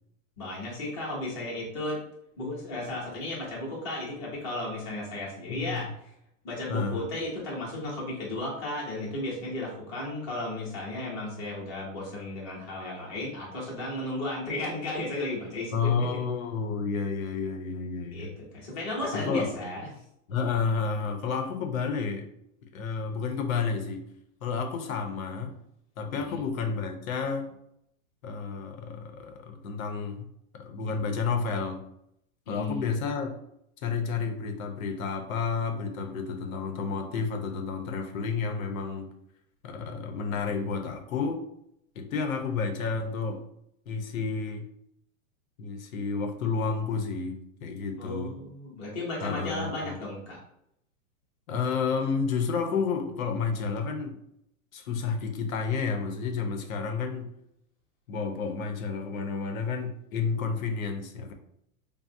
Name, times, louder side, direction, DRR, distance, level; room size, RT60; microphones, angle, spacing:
voice 1, 0.4-2.0 2.4-5.9 6.4-16.1 18.1-18.3 18.5-19.9 26.1-26.4 32.5-32.9 48.0-50.4, left 1 dB, 20° left, -4 dB, 0.5 m, -34 dB
voice 2, 5.5-5.8 6.7-7.1 15.7-18.3 19.1-19.6 20.3-22.3 22.7-24.0 24.4-25.6 26.0-27.5 28.2-30.3 30.6-31.8 32.5-33.3 33.8-39.1 39.6-41.4 42.0-43.4 43.9-44.7 45.6-48.4 49.2-50.0 51.5-54.2 54.7-57.3 58.1-61.3, left 5 dB, 80° left, 5 dB, 0.6 m, -30 dB
3.5 x 2.0 x 2.5 m, 0.75 s
supercardioid pair, 165°, 41 cm